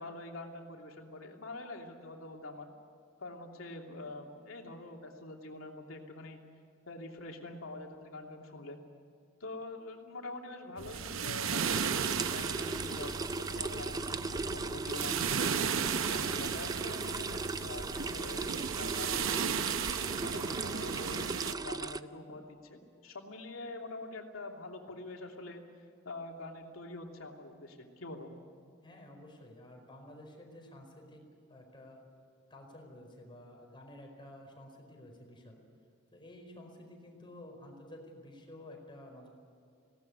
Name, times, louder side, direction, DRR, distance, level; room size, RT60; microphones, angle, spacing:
voice 1, 0.0-2.7 3.2-6.4 6.9-8.8 9.4-15.2 15.7-18.5 18.8-19.3 20.2-25.6 26.0-28.3, left 2 dB, 85° left, 1 dB, 3.0 m, -45 dB
sound 1, 10.8-21.5, right 7 dB, 75° right, 0.7 m, -35 dB
sound 2, 11.6-22.0, right 3 dB, 20° right, 0.5 m, -38 dB
voice 2, 28.8-31.2 31.5-32.0 32.5-35.6 36.1-39.3, left 1 dB, 25° left, 2 dB, 4.8 m, -51 dB
19.5 x 17.5 x 9.8 m, 2.3 s
head